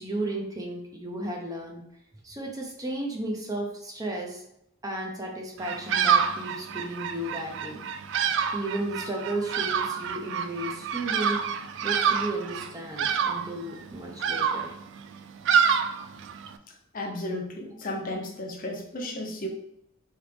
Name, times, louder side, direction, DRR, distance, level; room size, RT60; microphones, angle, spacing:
voice 1, 0.0-1.8 2.2-4.4 4.8-7.8 8.5-14.7, right 1 dB, 20° right, 0 dB, 0.6 m, -34 dB
Bird vocalization bird call bird song, 5.6-16.6, right 7 dB, 60° right, 0.3 m, -27 dB
voice 2, 16.9-19.5, left 1 dB, 45° left, 1 dB, 0.7 m, -34 dB
3.9 x 3.3 x 3.3 m, 0.79 s
head